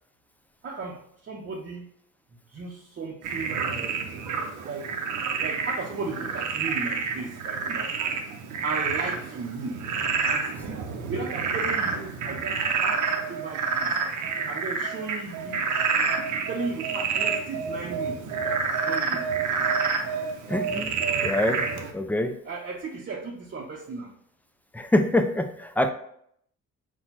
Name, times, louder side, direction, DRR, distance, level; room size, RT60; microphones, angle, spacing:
voice 1, 0.6-1.9 2.5-4.0 4.6-4.9 5.4-8.2 8.6-9.9 10.2-13.9 14.5-15.7 16.5-19.2 22.4-24.1, right 4 dB, 40° right, -2 dB, 0.7 m, -36 dB
Frog, 3.2-21.9, right 5 dB, 75° right, 0.7 m, -28 dB
voice 2, 20.5-22.4 24.7-25.9, left 1 dB, 5° left, 8 dB, 0.4 m, -25 dB
4.2 x 2.3 x 4.1 m, 0.69 s
cardioid pair, 90°, 30 cm